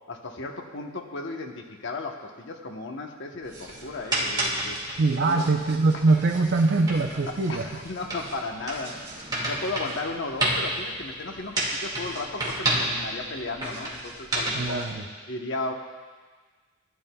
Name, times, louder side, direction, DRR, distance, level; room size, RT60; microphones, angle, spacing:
voice 1, 0.1-4.8 5.2-5.4 7.5-9.0 9.4-14.8 15.3-15.7, left 3 dB, 65° left, 3 dB, 1.0 m, -35 dB
sound 1, 3.4-14.9, right 1 dB, 20° right, 2.0 m, -31 dB
voice 2, 5.0-7.7 14.5-15.1, right 3 dB, 65° right, 2 dB, 0.7 m, -23 dB
16.0 x 10.0 x 2.3 m, 1.5 s
head